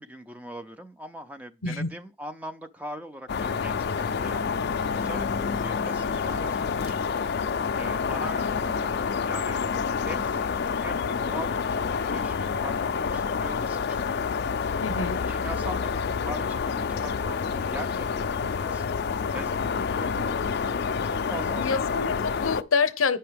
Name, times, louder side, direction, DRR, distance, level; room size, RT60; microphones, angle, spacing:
voice 1, 0.0-4.5 4.9-7.1 7.7-9.6 10.0-14.1 14.9-18.9 19.3-20.7 21.0-21.8, equal, 5° right, 0.4 m, -41 dB
sound 1, 3.3-22.6, left 5 dB, 55° left, 0.4 m, -28 dB
voice 2, 14.8-15.2 21.6-23.2, left 5 dB, 90° left, 0.7 m, -26 dB
8.5 x 5.6 x 3.4 m
head